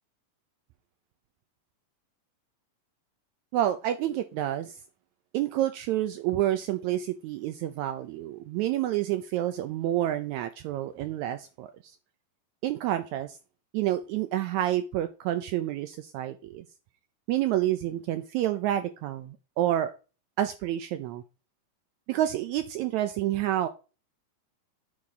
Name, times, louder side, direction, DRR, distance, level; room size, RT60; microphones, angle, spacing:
voice 1, 3.5-4.8 5.3-12.0 12.6-13.4 13.7-16.6 17.3-19.9 20.4-21.2 22.1-23.7, right 13 dB, 85° right, 10 dB, 1.6 m, -29 dB
8.7 x 4.8 x 3.8 m, 0.33 s
omnidirectional pair, 3.9 m